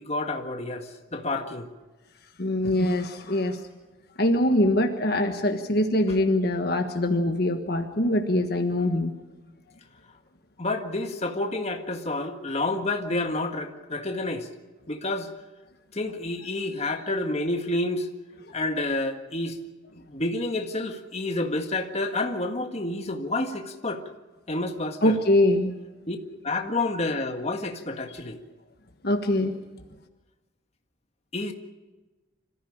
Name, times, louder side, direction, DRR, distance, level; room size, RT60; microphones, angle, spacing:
voice 1, 0.0-1.7 10.6-14.5 14.9-15.3 15.9-18.1 18.5-19.6 19.9-24.0 24.5-25.2 26.1-26.2 26.4-28.4 31.3-31.5, left 2 dB, 35° left, 4 dB, 1.8 m, -29 dB
voice 2, 2.4-3.6 4.2-9.1 25.0-25.7 29.0-29.6, left 1 dB, 55° left, 5 dB, 1.4 m, -23 dB
26.0 x 15.0 x 8.7 m, 1.2 s
head